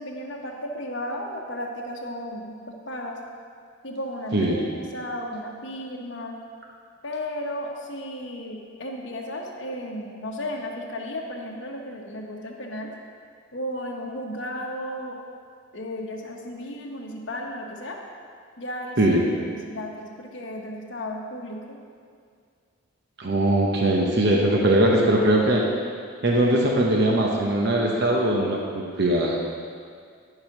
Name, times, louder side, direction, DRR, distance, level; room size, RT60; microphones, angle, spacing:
voice 1, 0.0-3.2 3.8-6.4 7.0-12.9 13.5-15.2 15.7-18.0 18.6-19.0 19.2-21.8, left 1 dB, 55° left, 0 dB, 1.1 m, -34 dB
voice 2, 23.2-25.6 26.2-29.4, right 1 dB, 50° right, -1 dB, 0.9 m, -21 dB
10.5 x 4.8 x 5.9 m, 2.2 s
head